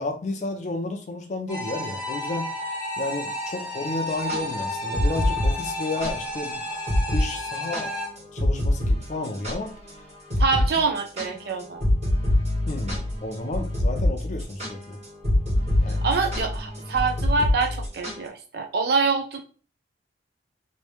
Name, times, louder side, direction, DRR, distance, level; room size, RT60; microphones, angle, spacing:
voice 1, 0.0-2.5 3.0-6.6 7.1-9.7 12.7-15.0 15.8-16.1, left 2 dB, 40° left, 0.4 m, -32 dB
sound 1, 1.5-8.1, left 1 dB, 5° right, 1.0 m, -32 dB
sound 2, 4.1-6.1 6.4-6.5 6.9-7.2 7.5-9.9 10.3-10.7 11.0-18.3, left 1 dB, 40° right, 1.5 m, -24 dB
voice 2, 10.4-11.9 16.0-19.4, right 4 dB, 55° right, 0.4 m, -25 dB
3.0 x 2.6 x 3.1 m
head